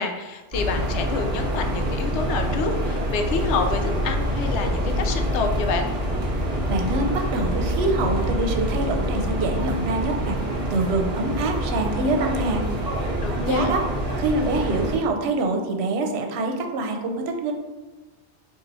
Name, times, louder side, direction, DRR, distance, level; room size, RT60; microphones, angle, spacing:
voice 1, 0.0-5.9 13.2-13.7, left 4 dB, 80° left, 5 dB, 0.9 m, -28 dB
sound 1, 0.5-15.0, equal, 40° right, 0.9 m, -26 dB
voice 2, 6.7-10.4 10.7-12.6 13.3-13.9 14.2-17.5, right 2 dB, 70° right, 4 dB, 0.8 m, -25 dB
4.2 x 2.6 x 3.9 m, 1.2 s
omnidirectional pair, 1.2 m